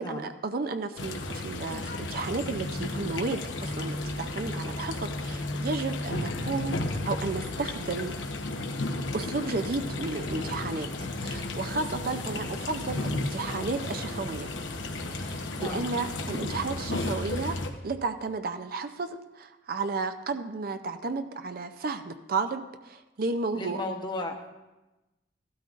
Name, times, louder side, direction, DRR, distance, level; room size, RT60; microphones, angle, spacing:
voice 1, 0.0-8.2 9.1-14.5 15.1-17.6 17.8-23.8, right 3 dB, 50° right, 9 dB, 0.5 m, -33 dB
sound 1, 1.0-17.7, left 2 dB, 90° left, 1.0 m, -33 dB
voice 2, 15.5-15.9 23.5-24.6, left 2 dB, 25° left, 3 dB, 1.0 m, -35 dB
15.5 x 12.5 x 2.5 m, 1.1 s
head